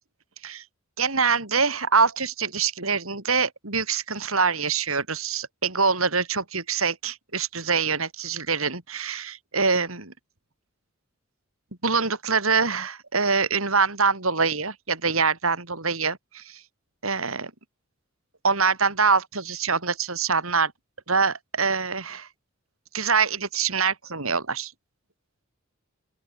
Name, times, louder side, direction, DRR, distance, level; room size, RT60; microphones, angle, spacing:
voice 1, 1.0-10.1 11.8-16.6 17.0-17.5 18.4-20.7 21.1-22.3 22.9-24.7, right 5 dB, 85° right, 5.2 m, -24 dB
open air
head